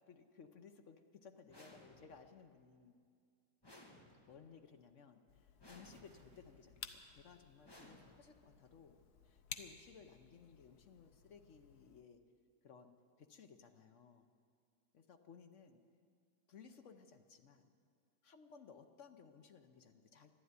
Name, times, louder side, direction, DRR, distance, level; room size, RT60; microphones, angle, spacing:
voice 1, 0.1-2.9 4.3-9.0 9.2-12.2 12.6-14.3 14.9-15.8 16.5-17.7 18.2-20.3, left 6 dB, 55° left, 7 dB, 1.0 m, -60 dB
sound 1, 1.5-2.4 3.6-4.6 5.6-6.4 7.6-8.6, left 1 dB, 15° left, 1.3 m, -60 dB
sound 2, 5.3-12.0, left 8 dB, 75° left, 1.3 m, -56 dB
sound 3, 5.8-7.9, right 4 dB, 70° right, 1.7 m, -70 dB
13.0 x 11.5 x 9.5 m, 2.2 s
omnidirectional pair, 1.7 m